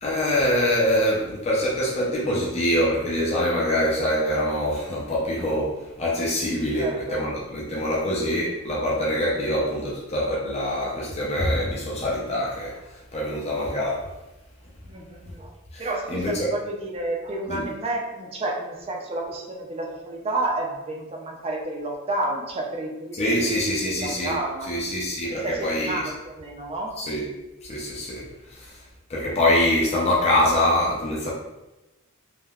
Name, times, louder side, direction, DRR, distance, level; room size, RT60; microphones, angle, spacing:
voice 1, 0.0-12.8 13.1-14.1 15.7-16.5 17.5-17.7 23.1-24.4 24.7-26.0 27.0-27.3 27.6-28.8 29.1-31.3, left 1 dB, 30° left, -5 dB, 0.5 m, -24 dB
voice 2, 6.7-7.3 7.6-7.9 14.9-15.5 15.8-23.5 23.8-24.7 25.2-27.0, right 2 dB, 30° right, 0 dB, 0.4 m, -30 dB
3.3 x 2.1 x 2.3 m, 1.0 s
head